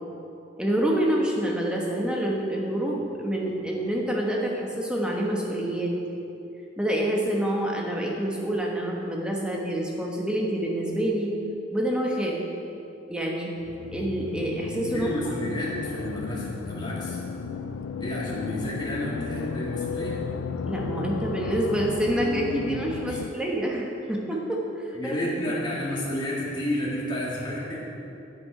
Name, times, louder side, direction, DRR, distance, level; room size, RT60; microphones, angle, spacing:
voice 1, 0.6-5.9 6.8-11.3 11.7-12.4 13.1-13.5 13.9-15.1 20.7-25.2, right 1 dB, 5° right, -2 dB, 1.1 m, -27 dB
sound 1, 13.6-23.3, left 5 dB, 85° left, 0.4 m, -34 dB
voice 2, 14.9-17.2 18.0-20.2 23.1-23.2 24.9-27.8, left 1 dB, 25° left, -7 dB, 2.1 m, -31 dB
9.6 x 9.2 x 4.9 m, 2.9 s
head